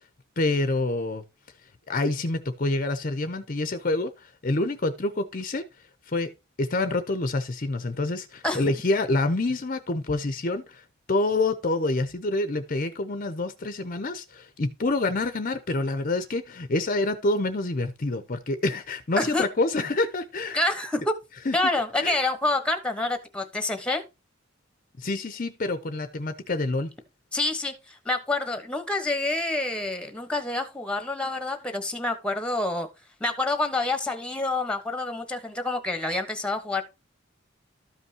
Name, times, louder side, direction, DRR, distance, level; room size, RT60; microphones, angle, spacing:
voice 1, 0.4-1.2 1.9-5.6 6.1-6.3 6.6-20.6 21.4-21.6 22.0-22.2 25.0-26.9, left 2 dB, 40° left, 0.7 m, -27 dB
voice 2, 19.2-19.5 20.5-21.1 21.5-24.0 27.3-32.9 33.2-36.8, left 2 dB, 5° left, 1.1 m, -27 dB
13.0 x 5.4 x 2.8 m
head